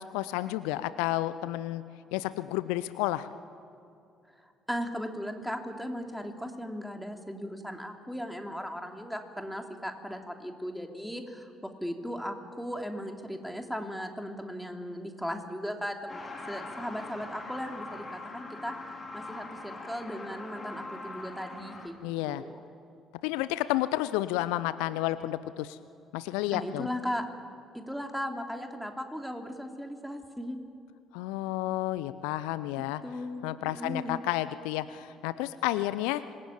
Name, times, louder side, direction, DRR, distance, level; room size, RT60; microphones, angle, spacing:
voice 1, 0.0-1.8 2.1-3.3 22.0-22.4 23.2-25.8 26.1-26.9 31.1-33.0 33.4-36.2, left 15 dB, 65° left, 14 dB, 0.7 m, -31 dB
voice 2, 4.7-16.2 16.5-18.7 19.1-22.0 22.2-22.6 26.5-27.2 27.7-30.6 33.0-34.2, equal, ahead, 3 dB, 3.2 m, -37 dB
Truck, 16.1-21.9, left 2 dB, 25° left, 5.4 m, -42 dB
26.0 x 21.0 x 8.8 m, 2.5 s
figure-of-eight pair, 50°, 0 cm